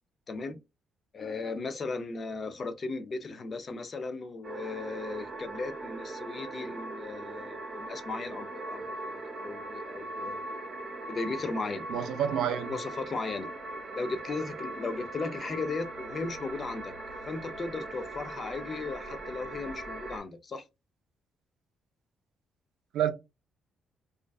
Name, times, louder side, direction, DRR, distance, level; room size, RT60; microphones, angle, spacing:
voice 1, 0.3-0.6 1.1-10.4 11.1-11.9 12.7-13.5 13.9-16.9 17.3-20.6, left 3 dB, 40° left, 0.4 m, -36 dB
sound 1, 4.4-20.2, right 2 dB, 35° right, 0.9 m, -40 dB
voice 2, 11.9-12.8 22.9-23.1, right 9 dB, 80° right, 0.3 m, -28 dB
2.4 x 2.2 x 2.3 m
cardioid pair, 90°, 0 cm